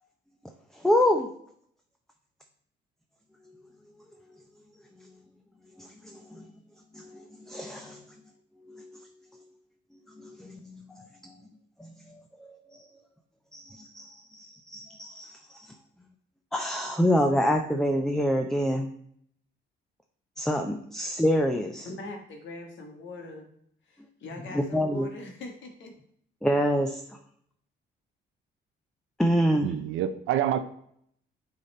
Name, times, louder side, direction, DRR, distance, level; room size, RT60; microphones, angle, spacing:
voice 1, 0.7-1.3 5.8-6.4 6.9-8.0 8.7-8.9 10.2-11.4 11.8-12.8 13.5-15.7 16.5-18.9 20.4-21.9 24.4-25.1 26.4-27.0 29.2-29.7, equal, ahead, 4 dB, 0.6 m, -27 dB
voice 2, 21.8-23.5 24.2-25.9, left 2 dB, 70° left, 2 dB, 1.6 m, -41 dB
voice 3, 29.6-30.6, right 10 dB, 85° right, 11 dB, 0.5 m, -27 dB
8.4 x 4.2 x 4.3 m, 0.68 s
cardioid pair, 90°, 20 cm